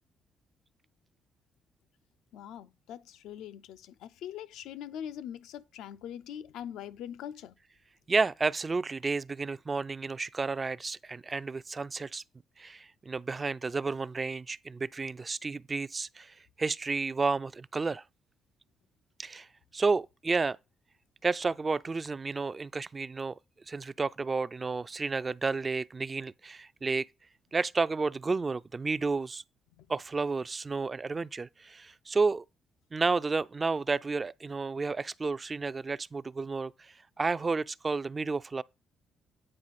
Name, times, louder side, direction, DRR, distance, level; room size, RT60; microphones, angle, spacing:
voice 1, 2.3-7.6 29.8-29.9, left 10 dB, 90° left, 0.4 m, -42 dB
voice 2, 8.1-12.2 12.6-18.0 19.2-19.5 19.7-20.6 21.2-23.4 23.7-27.1 27.5-29.4 29.9-32.4 32.9-38.6, right 4 dB, 30° right, 0.3 m, -31 dB
8.8 x 4.7 x 4.0 m
cardioid pair, 90°, 0 cm